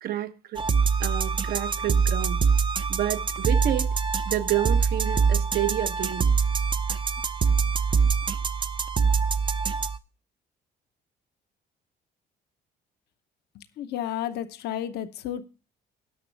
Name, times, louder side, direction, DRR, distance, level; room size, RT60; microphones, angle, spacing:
voice 1, 0.0-0.6 1.0-2.4 2.9-3.9 4.3-6.3, right 13 dB, 65° right, 0.9 m, -29 dB
sound 1, 0.6-10.0, right 5 dB, 30° right, 0.5 m, -24 dB
voice 2, 13.5-15.5, left 11 dB, 75° left, 0.9 m, -32 dB
18.5 x 6.1 x 3.3 m
cardioid pair, 110°, 17 cm